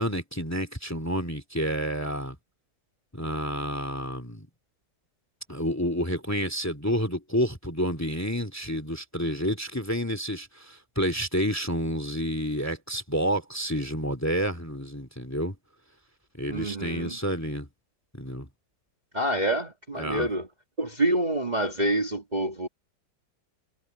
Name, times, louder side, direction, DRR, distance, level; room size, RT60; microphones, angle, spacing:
voice 1, 0.0-2.4 3.1-4.5 5.5-15.5 16.4-17.7 18.1-18.5 20.0-20.3, equal, 10° left, 2.3 m, -29 dB
voice 2, 16.5-17.2 19.1-20.5 20.8-22.7, right 1 dB, 25° right, 2.1 m, -27 dB
omnidirectional pair, 2.0 m